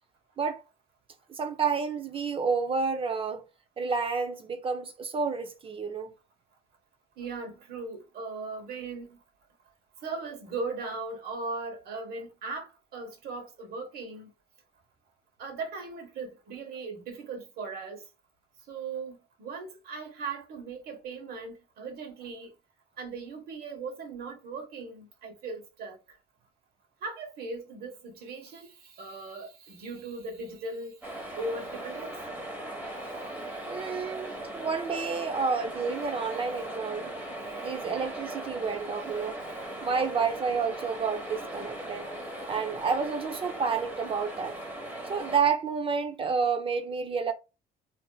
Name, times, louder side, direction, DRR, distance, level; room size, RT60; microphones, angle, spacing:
voice 1, 1.3-3.4 3.8-6.1 33.7-37.1 37.6-39.4 39.8-42.1 42.5-44.5 45.1-47.3, right 5 dB, 30° right, 0.5 m, -30 dB
voice 2, 7.2-9.2 10.0-14.3 15.4-18.0 18.7-22.5 23.0-26.0 27.0-31.0 31.4-32.1, right 3 dB, 65° right, 1.3 m, -38 dB
sound 1, 31.0-45.4, right 1 dB, 10° right, 1.1 m, -39 dB
3.4 x 2.6 x 2.3 m
cardioid pair, 110°, 17 cm